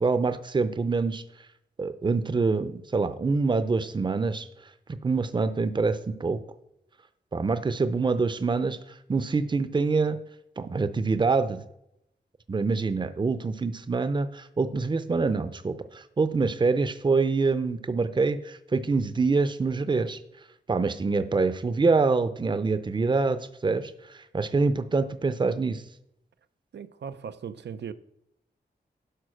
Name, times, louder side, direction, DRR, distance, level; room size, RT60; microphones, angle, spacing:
voice 1, 0.0-1.2 1.8-4.5 4.9-6.4 7.3-8.8 9.1-10.2 10.6-11.6 12.5-20.2 20.7-25.8, right 4 dB, 25° right, 0.6 m, -25 dB
voice 2, 26.7-27.9, right 7 dB, 90° right, 0.6 m, -38 dB
11.5 x 5.1 x 6.2 m
wide cardioid pair, 170°, 18 cm